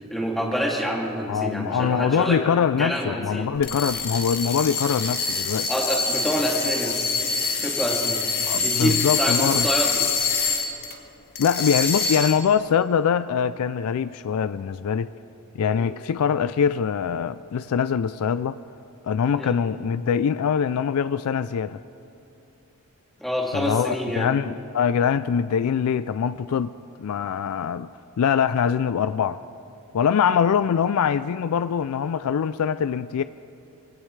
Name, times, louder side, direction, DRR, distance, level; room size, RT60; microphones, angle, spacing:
voice 1, 0.1-2.4 2.8-3.5 5.7-7.1 7.6-8.2 8.6-10.1 15.7-15.9 19.3-19.5 23.2-24.3, equal, ahead, -3 dB, 2.5 m, -27 dB
voice 2, 1.3-5.7 8.5-9.7 11.4-15.1 15.5-18.6 19.0-21.8 23.5-26.7 27.0-27.9 28.2-29.4 29.9-33.2, left 7 dB, 75° left, 13 dB, 0.4 m, -23 dB
sound 1, 3.6-11.0 11.4-12.5, left 4 dB, 45° left, 1.7 m, -25 dB
23.5 x 17.5 x 3.3 m, 3.0 s
head